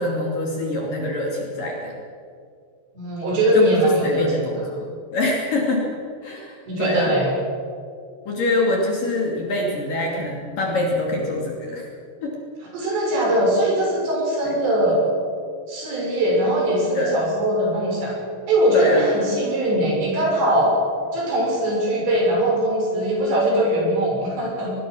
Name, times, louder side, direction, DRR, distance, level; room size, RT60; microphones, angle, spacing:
voice 1, 0.0-1.9 3.5-4.9 5.1-5.9 6.2-7.1 8.3-11.9 12.2-12.3 16.9-17.2 18.7-19.1, left 1 dB, 50° left, -2 dB, 3.9 m, -24 dB
voice 2, 2.9-4.3 6.7-7.3 12.7-15.0 15.7-18.1 18.5-20.7 21.1-24.7, right 1 dB, 60° right, -2 dB, 8.2 m, -21 dB
21.5 x 21.0 x 6.3 m, 2.3 s
omnidirectional pair, 5.8 m